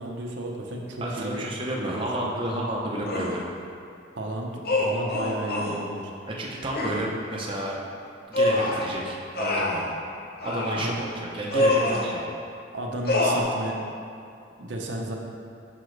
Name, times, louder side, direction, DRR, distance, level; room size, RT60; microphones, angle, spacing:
voice 1, 0.0-1.4 1.8-2.3 4.1-6.1 10.8-12.0 12.7-13.8 14.6-15.1, right 1 dB, 75° right, 0 dB, 0.8 m, -33 dB
voice 2, 1.0-3.4 6.3-7.8 8.3-9.9 10.4-11.7 12.0-12.2, right 1 dB, 30° right, -3 dB, 0.7 m, -31 dB
sound 1, 3.1-3.4 4.6-5.8 6.7-7.0 8.3-8.9 9.3-9.8 10.4-10.9 11.5-12.1 13.1-13.4, left 2 dB, 55° left, 0.9 m, -25 dB
7.8 x 5.9 x 3.3 m, 2.5 s
head